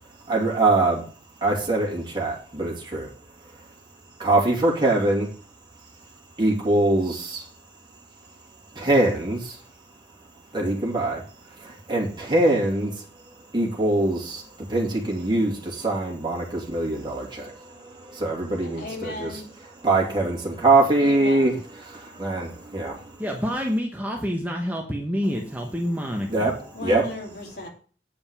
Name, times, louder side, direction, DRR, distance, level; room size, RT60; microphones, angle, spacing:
voice 1, 0.3-1.0 1.4-3.1 4.2-5.3 6.4-7.5 8.7-9.6 10.5-11.2 11.6-13.0 13.5-19.3 19.8-21.5 21.8-23.1 26.3-27.0, right 2 dB, 25° right, -2 dB, 2.8 m, -23 dB
voice 2, 18.5-19.5 21.0-21.6 26.7-27.7, left 2 dB, 60° left, 0 dB, 3.0 m, -36 dB
voice 3, 23.2-26.6, equal, 10° right, 1 dB, 1.1 m, -27 dB
9.0 x 5.2 x 7.2 m, 0.41 s
head